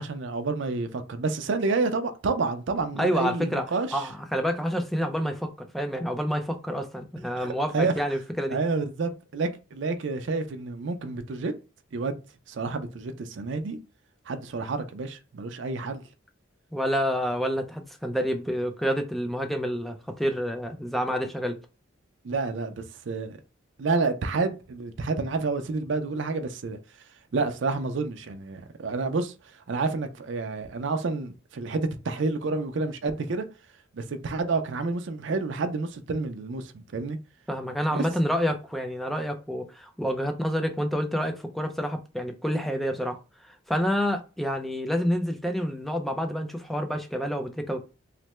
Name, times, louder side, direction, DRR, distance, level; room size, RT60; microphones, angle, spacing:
voice 1, 0.0-4.1 7.4-7.9 8.5-11.5 11.9-12.2 12.5-13.8 14.3-16.0 22.2-23.4 23.8-26.8 27.3-29.3 29.7-33.5 33.9-37.2 37.9-38.1, right 3 dB, 65° right, 0.4 m, -29 dB
voice 2, 3.0-3.6 3.9-8.6 16.7-21.6 37.5-43.2 43.4-47.8, equal, ahead, 0.4 m, -28 dB
3.2 x 2.1 x 3.0 m
head